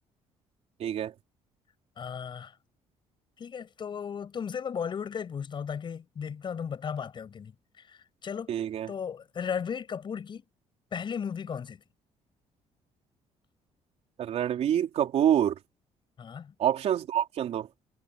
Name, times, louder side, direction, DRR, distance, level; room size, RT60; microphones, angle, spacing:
voice 1, 0.8-1.1 8.5-8.9 14.2-15.5 16.6-17.7, right 10 dB, 60° right, 3.9 m, -26 dB
voice 2, 2.0-2.5 3.4-8.5 8.9-10.4 10.9-11.8 16.2-16.5, left 7 dB, 40° left, 6.0 m, -36 dB
cardioid pair, 125°, 12 cm